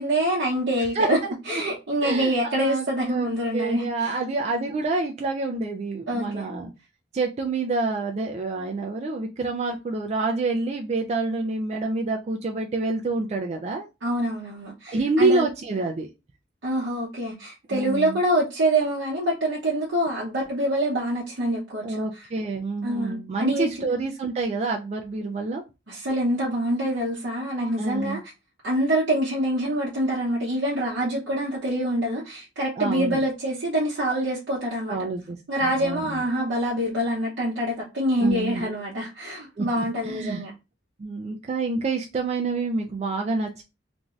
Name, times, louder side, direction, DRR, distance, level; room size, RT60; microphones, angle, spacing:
voice 1, 0.0-1.2 1.5-4.2 6.1-6.5 14.0-15.5 16.6-22.3 22.8-23.9 25.9-28.2 28.6-35.0 35.5-40.5, right 1 dB, 65° right, 0.7 m, -25 dB
voice 2, 0.9-1.3 2.0-6.7 7.1-13.9 14.9-16.1 17.7-18.2 21.8-25.6 27.8-28.2 32.8-33.2 34.9-35.4 35.6-36.2 38.2-38.7 39.6-40.4 41.0-43.6, right 3 dB, 35° right, 0.3 m, -27 dB
2.6 x 2.3 x 3.1 m
head